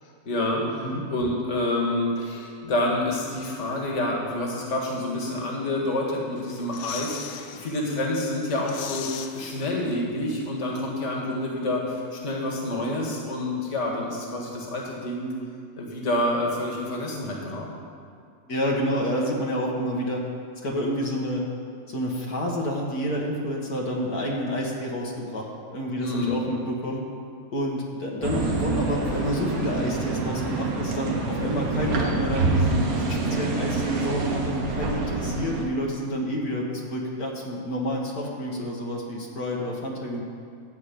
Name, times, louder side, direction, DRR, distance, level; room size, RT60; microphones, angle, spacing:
voice 1, 0.0-15.3 15.8-17.7 26.0-26.3, left 1 dB, 50° left, -1 dB, 2.0 m, -28 dB
sound 1, 6.4-7.7 8.0-8.1 8.4-10.2 10.5-10.6, left 8 dB, 70° left, 1.0 m, -38 dB
voice 2, 18.5-20.2 20.6-21.5 21.9-27.0 27.5-40.2, equal, 85° left, -2 dB, 2.0 m, -29 dB
sound 2, 28.2-35.7, right 3 dB, 75° right, 1.6 m, -27 dB
14.0 x 4.8 x 8.4 m, 2.3 s
omnidirectional pair, 1.6 m